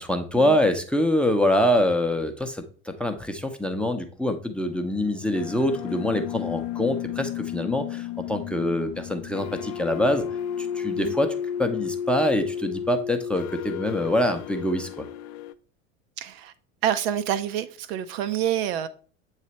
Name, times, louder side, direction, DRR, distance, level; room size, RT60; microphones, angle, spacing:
voice 1, 0.0-10.2 10.6-11.3 11.6-15.1, left 1 dB, 5° left, 0.7 m, -25 dB
sound 1, 4.6-15.5, left 9 dB, 40° left, 0.4 m, -33 dB
voice 2, 16.2-16.5 16.8-18.9, right 10 dB, 50° right, 0.6 m, -27 dB
8.0 x 3.2 x 4.2 m
figure-of-eight pair, 75°, 39 cm